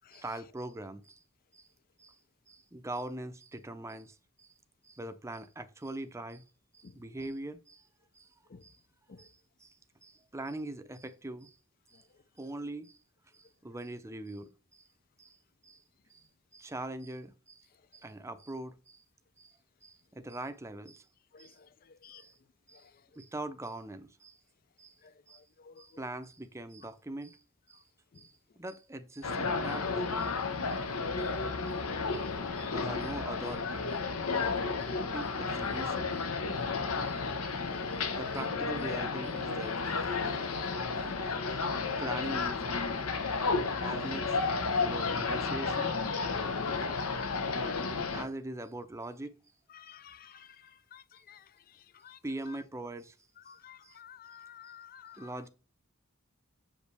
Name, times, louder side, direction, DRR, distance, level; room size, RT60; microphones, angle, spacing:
voice 1, 0.1-1.2 1.5-1.7 2.0-2.2 2.5-4.2 4.4-4.5 4.8-6.4 6.8-7.8 8.2-8.3 8.6-8.8 9.2-9.3 9.6-9.7 10.0-11.5 11.9-12.0 12.4-13.0 13.3-14.5 15.2-15.4 15.6-15.8 16.1-16.2 16.5-17.6 17.9-19.0 19.4-19.5 19.8-21.0 21.4-21.6 22.2-22.3 22.7-22.8 23.2-24.4 24.8-24.9 25.3-25.4 25.8-27.4 27.7-27.8 28.2-30.4 30.7-30.8 31.7-31.8 32.1-32.2 32.6-34.0 34.3-34.5 34.8-36.3 36.6-36.7 37.1-37.2 37.5-37.6 37.9-39.8 41.5-41.6 41.9-42.7 43.8-44.4 44.8-45.9 47.5-47.6 48.1-49.3 52.2-53.1 53.8-54.0 55.2-55.5, right 2 dB, 15° right, 0.6 m, -42 dB
sound 1, 29.2-48.3, left 4 dB, 80° left, 1.0 m, -32 dB
voice 2, 53.6-55.2, left 8 dB, 45° left, 0.4 m, -50 dB
7.3 x 5.2 x 3.3 m
head